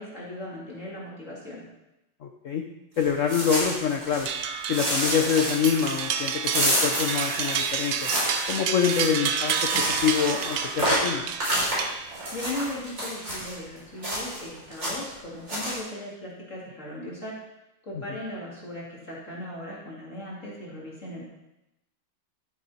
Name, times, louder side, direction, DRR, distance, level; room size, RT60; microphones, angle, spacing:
voice 1, 0.0-1.6 12.3-17.3 17.8-21.2, left 1 dB, 35° left, -6 dB, 2.8 m, -37 dB
voice 2, 2.2-2.6 3.0-4.3 4.7-8.1 8.5-11.2, left 7 dB, 70° left, 4 dB, 0.7 m, -26 dB
sound 1, 3.0-4.4 4.7-13.5 14.0-14.5 14.7-15.1 15.5-15.8, equal, 35° right, 4.8 m, -29 dB
sound 2, 4.3-12.4, right 7 dB, 65° right, 0.9 m, -30 dB
13.5 x 7.4 x 4.2 m, 0.93 s
omnidirectional pair, 2.3 m